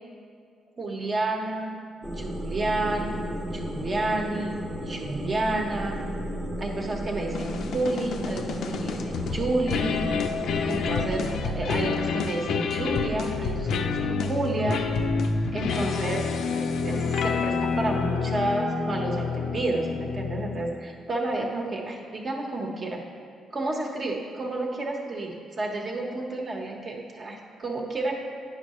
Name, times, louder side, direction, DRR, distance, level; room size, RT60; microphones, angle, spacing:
voice 1, 0.8-1.7 2.1-3.2 3.4-6.0 6.6-10.0 10.6-14.8 15.5-23.0 23.5-28.2, right 2 dB, 40° right, 0 dB, 1.1 m, -30 dB
sound 1, 2.0-11.4, equal, 10° right, 0.7 m, -34 dB
sound 2, 7.3-20.8, left 5 dB, 75° left, 0.5 m, -28 dB
9.7 x 5.6 x 3.1 m, 2.2 s
cardioid pair, 90°, 0 cm